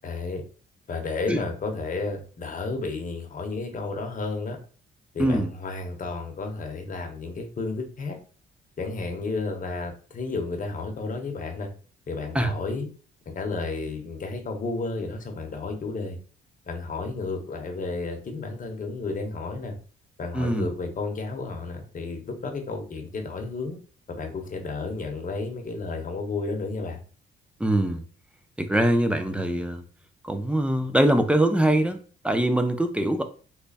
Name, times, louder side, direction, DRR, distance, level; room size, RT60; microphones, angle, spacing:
voice 1, 0.0-0.4 0.9-4.6 5.1-8.2 8.8-11.7 12.1-12.9 13.3-16.2 16.7-19.8 20.2-23.8 24.1-27.0, left 3 dB, 40° left, 1.0 m, -32 dB
voice 2, 5.2-5.5 12.3-12.5 20.3-20.7 27.6-28.0 28.6-29.8 30.2-32.0 32.2-33.2, right 1 dB, 5° right, 0.5 m, -23 dB
3.3 x 2.2 x 4.0 m
cardioid pair, 90°, 20 cm